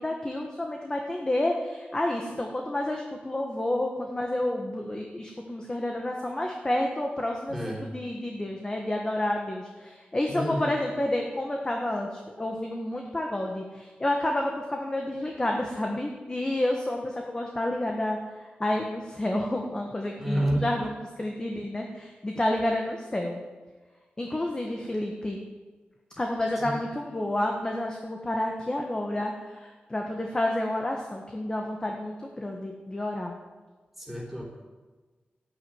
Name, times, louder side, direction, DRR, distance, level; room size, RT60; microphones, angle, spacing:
voice 1, 0.0-20.9 21.2-23.4 24.2-25.4 26.2-33.3, left 1 dB, 20° left, 1 dB, 1.5 m, -30 dB
voice 2, 7.5-7.9 10.3-10.7 20.2-20.6 26.6-26.7 34.0-34.5, right 1 dB, 5° right, -2 dB, 4.1 m, -29 dB
13.5 x 8.9 x 9.5 m, 1.3 s
wide cardioid pair, 135°, 4 cm